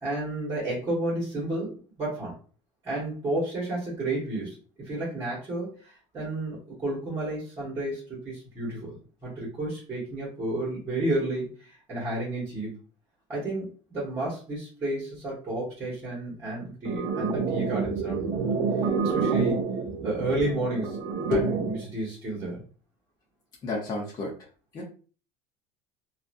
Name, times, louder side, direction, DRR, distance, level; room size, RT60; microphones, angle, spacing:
voice 1, 0.0-2.3 2.8-12.8 13.3-18.5 19.0-19.6 20.0-22.7, right 2 dB, 20° right, -6 dB, 1.1 m, -31 dB
sound 1, 16.8-21.8, right 5 dB, 35° right, 0.5 m, -28 dB
voice 2, 23.6-24.3 24.7-24.8, left 3 dB, 25° left, -4 dB, 0.7 m, -29 dB
2.8 x 2.4 x 2.5 m, 0.39 s
cardioid pair, 165°, 15 cm